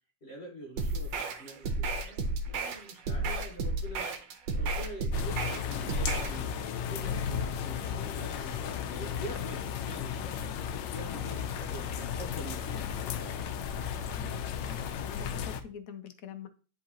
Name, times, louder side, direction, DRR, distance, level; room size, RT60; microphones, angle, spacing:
voice 1, 0.2-10.5 10.9-13.4, right 1 dB, 40° left, -2 dB, 1.4 m, -46 dB
sound 1, 0.8-6.4, right 2 dB, 85° right, 1.5 m, -32 dB
sound 2, 5.1-15.6, left 8 dB, 80° left, 1.3 m, -34 dB
voice 2, 14.1-16.5, left 7 dB, 65° left, 10 dB, 0.9 m, -46 dB
10.0 x 3.7 x 2.9 m, 0.37 s
omnidirectional pair, 2.0 m